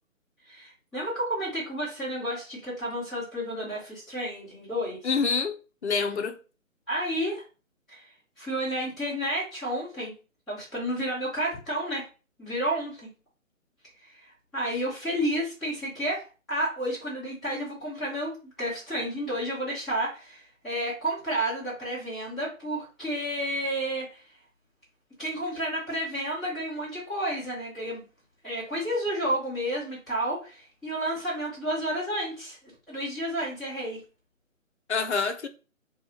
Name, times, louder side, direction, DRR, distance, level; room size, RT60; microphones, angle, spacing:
voice 1, 0.5-5.0 6.9-7.4 7.9-8.1 8.4-10.1 10.5-12.1 12.4-13.1 14.0-24.2 25.2-28.1 28.4-34.0, right 1 dB, ahead, 1.0 m, -31 dB
voice 2, 5.0-5.6 5.8-6.4 34.9-35.5, left 5 dB, 55° left, 0.6 m, -26 dB
3.4 x 2.3 x 2.9 m
figure-of-eight pair, 145°, 40 cm